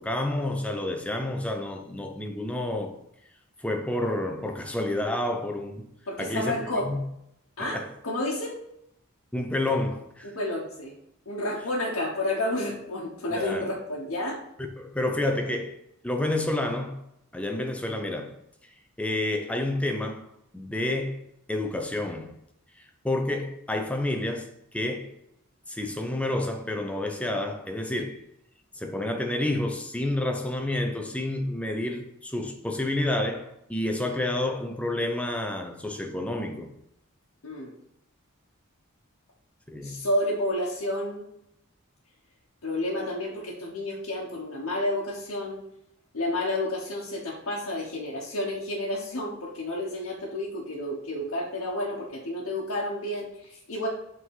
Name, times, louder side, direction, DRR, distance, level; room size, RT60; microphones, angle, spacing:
voice 1, 0.0-2.9 3.6-5.9 6.2-7.0 7.6-7.9 9.3-10.3 13.3-13.7 14.8-15.8 16.0-17.0 17.3-18.4 19.0-20.3 20.5-21.2 21.5-22.3 22.8-25.1 25.7-28.2 28.7-36.7 39.7-40.0, left 1 dB, 5° left, 0.6 m, -29 dB
voice 2, 6.1-6.9 7.6-8.6 10.2-10.9 11.3-14.4 37.4-37.7 39.8-41.2 42.6-45.6 46.1-53.9, left 1 dB, 80° left, 1.2 m, -30 dB
5.6 x 3.8 x 5.5 m
head